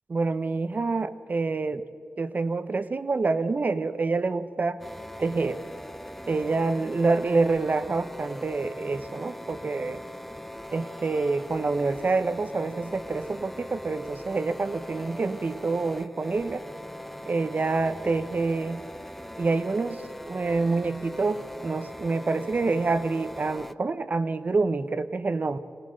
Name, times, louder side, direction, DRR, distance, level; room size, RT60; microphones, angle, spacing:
voice 1, 0.1-1.8 2.2-4.8 5.2-5.6 6.3-10.0 10.7-16.6 17.3-18.8 19.4-25.6, right 3 dB, 45° right, 12 dB, 0.9 m, -27 dB
sound 1, 4.8-23.7, equal, 5° left, 0.6 m, -41 dB
23.5 x 17.5 x 6.5 m, 2.3 s
wide cardioid pair, 80°, 4 cm